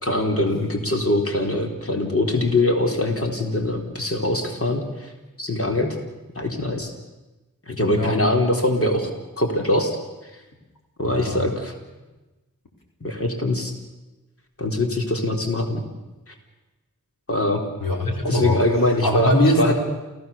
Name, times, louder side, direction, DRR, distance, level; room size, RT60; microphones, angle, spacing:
voice 1, 0.0-5.1 5.4-6.0 6.4-6.9 7.7-10.0 11.0-11.7 13.0-13.7 14.6-15.8 16.3-16.4 17.3-17.6 18.3-19.3 19.6-19.7, left 1 dB, 45° left, 2 dB, 3.8 m, -23 dB
voice 2, 11.0-11.4 17.8-18.6 19.0-19.7, left 1 dB, 90° left, 0 dB, 4.1 m, -21 dB
29.0 x 16.5 x 7.2 m, 1.1 s
cardioid pair, 40°, 33 cm